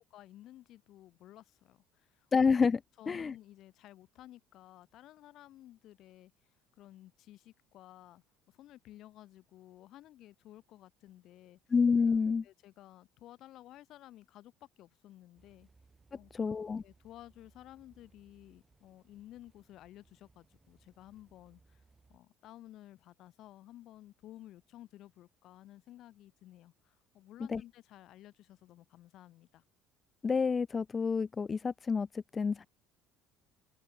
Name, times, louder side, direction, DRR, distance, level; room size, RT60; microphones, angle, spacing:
voice 1, 0.0-2.3 3.0-6.3 6.8-11.6 12.1-12.2 12.4-15.7 16.1-16.5 16.8-21.8 22.1-29.6, left 14 dB, 65° left, 2.0 m, -54 dB
voice 2, 2.3-2.8 3.1-3.3 11.7-12.4 16.3-16.8 27.5-27.6 30.2-32.7, left 5 dB, 30° left, 0.6 m, -28 dB
sound 1, 15.4-22.2, right 3 dB, 20° right, 3.7 m, -66 dB
open air
supercardioid pair, 75°, 0 cm